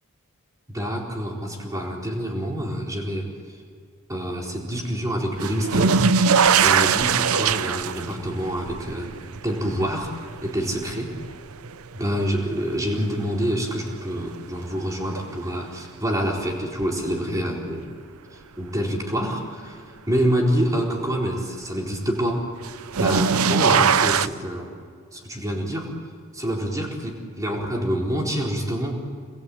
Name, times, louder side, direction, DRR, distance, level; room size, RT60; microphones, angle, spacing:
voice 1, 0.7-3.3 4.1-6.1 6.6-9.1 9.4-10.1 10.4-11.2 11.9-17.9 18.3-22.5 22.9-24.7 25.1-25.9 26.3-29.1, equal, 15° right, -1 dB, 4.2 m, -27 dB
sound 1, 5.4-12.4 12.9-13.6 15.2-15.3 16.8-16.9 22.6-24.3, right 6 dB, 80° right, 0.7 m, -21 dB
28.0 x 21.5 x 8.7 m, 2.1 s
head